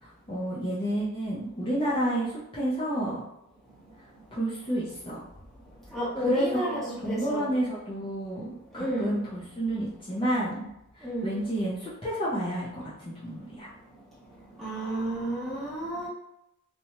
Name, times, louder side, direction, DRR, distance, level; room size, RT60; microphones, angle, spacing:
voice 1, 0.0-3.2 4.3-5.2 6.2-10.7 11.0-13.7, right 1 dB, 25° left, -9 dB, 0.6 m, -30 dB
voice 2, 5.9-7.5 8.7-9.1 11.0-11.3 14.6-16.1, equal, ahead, -8 dB, 0.9 m, -31 dB
2.7 x 2.2 x 2.9 m, 0.83 s
head